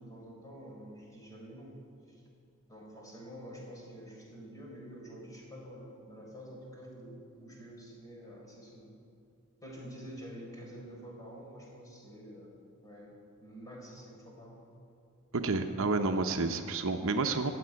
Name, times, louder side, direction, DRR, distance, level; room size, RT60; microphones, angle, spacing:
voice 1, 0.0-1.8 2.1-2.2 2.7-8.9 9.6-12.5 12.8-13.1 13.4-14.6, equal, 15° left, -2 dB, 4.3 m, -48 dB
voice 2, 15.3-17.5, right 3 dB, 65° right, 6 dB, 0.8 m, -30 dB
15.5 x 7.8 x 9.8 m, 2.4 s
head